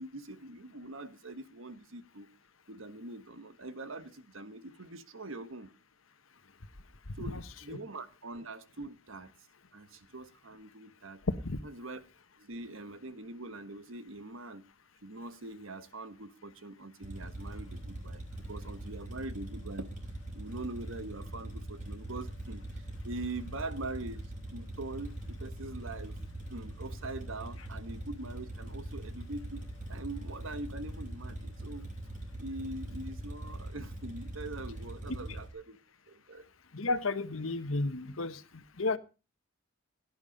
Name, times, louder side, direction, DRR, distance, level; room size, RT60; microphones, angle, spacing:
voice 1, 0.0-2.3 2.7-5.7 7.2-9.3 9.7-11.2 11.6-12.0 12.4-14.6 15.0-18.2 18.5-19.9 20.3-24.2 24.5-26.2 26.4-29.6 29.9-31.9 32.4-35.8 36.1-36.5, right 2 dB, 70° right, 1.3 m, -43 dB
sound 1, 17.0-35.5, right 1 dB, 40° right, 5.3 m, -42 dB
voice 2, 36.7-38.4 38.8-39.0, left 3 dB, 75° left, 1.2 m, -32 dB
17.0 x 10.5 x 5.2 m
head